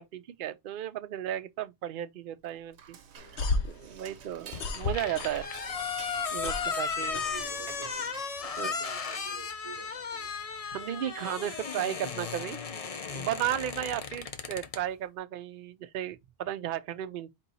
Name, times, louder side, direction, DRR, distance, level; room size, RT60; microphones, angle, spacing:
voice 1, 0.0-3.0 3.3-5.5 6.3-7.2 8.6-8.7 10.6-12.6 13.1-17.3, right 11 dB, 60° right, 0.6 m, -34 dB
Dishes pots and pans / Cutlery silverware, 2.4-9.2, right 8 dB, 80° right, 1.0 m, -50 dB
sound 1, 3.2-5.7 6.0-7.9, left 3 dB, 80° left, 1.1 m, -33 dB
sound 2, 4.5-14.8, left 5 dB, 40° left, 0.6 m, -35 dB
voice 2, 7.1-10.4, right 7 dB, 30° right, 0.9 m, -49 dB
4.5 x 2.7 x 4.0 m
omnidirectional pair, 1.1 m